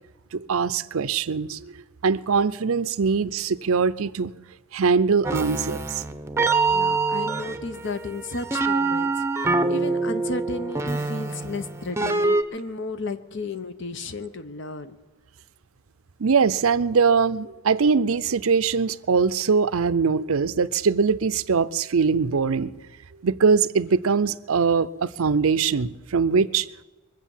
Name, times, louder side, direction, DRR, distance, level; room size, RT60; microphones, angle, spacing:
voice 1, 0.3-1.7 2.0-4.3 4.7-6.0 16.2-22.7 23.2-26.7, right 5 dB, 80° right, 0.6 m, -22 dB
sound 1, 5.2-12.4, right 3 dB, 10° right, 0.7 m, -25 dB
voice 2, 6.7-15.0, left 3 dB, 60° left, 1.0 m, -33 dB
23.0 x 7.8 x 7.3 m
head